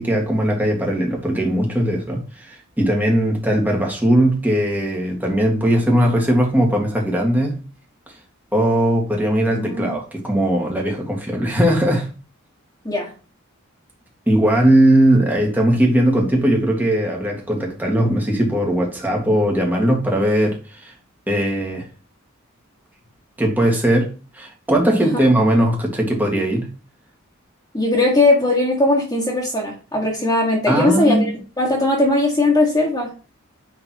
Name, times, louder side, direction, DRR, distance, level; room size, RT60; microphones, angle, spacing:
voice 1, 0.0-7.6 8.5-12.1 14.3-20.9 21.3-21.9 23.4-26.7 30.7-31.3, right 1 dB, 10° right, 1.8 m, -19 dB
voice 2, 9.5-9.9 12.8-13.1 27.7-31.2 31.6-33.1, left 2 dB, 15° left, 1.7 m, -19 dB
9.7 x 4.0 x 3.0 m
head